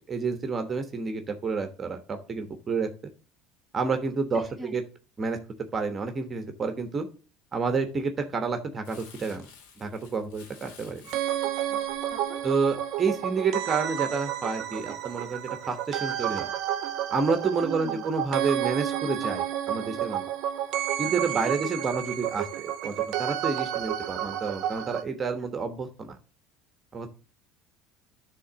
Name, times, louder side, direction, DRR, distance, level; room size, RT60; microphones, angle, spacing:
voice 1, 0.1-2.9 3.7-4.8 5.2-5.4 5.7-7.1 7.5-9.5 9.8-11.0 12.4-16.5 17.1-20.3 21.0-26.2 26.9-27.1, right 4 dB, 30° right, 7 dB, 1.2 m, -29 dB
voice 2, 4.3-4.7 11.4-11.8 12.1-12.4 17.6-18.0 21.3-21.5, right 4 dB, 5° right, 3 dB, 1.4 m, -40 dB
Crumpling crinkling, 8.8-13.4 13.9-14.0, left 6 dB, 75° left, 2.0 m, -53 dB
sound 1, 11.1-25.0, right 11 dB, 65° right, 0.7 m, -31 dB
10.0 x 3.8 x 6.2 m, 0.36 s
hypercardioid pair, 80°, 0 cm